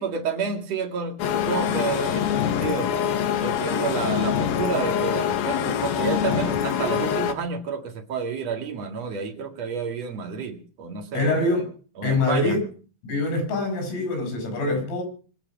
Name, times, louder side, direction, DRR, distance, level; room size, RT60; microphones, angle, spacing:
voice 1, 0.0-2.9 3.4-11.5 12.0-12.6, right 5 dB, 50° right, 2.0 m, -30 dB
sound 1, 1.2-7.3, left 9 dB, 70° left, 2.3 m, -24 dB
voice 2, 11.1-11.7 12.0-12.7 13.1-15.0, left 2 dB, 85° left, 9.6 m, -24 dB
24.0 x 9.0 x 6.0 m
omnidirectional pair, 6.0 m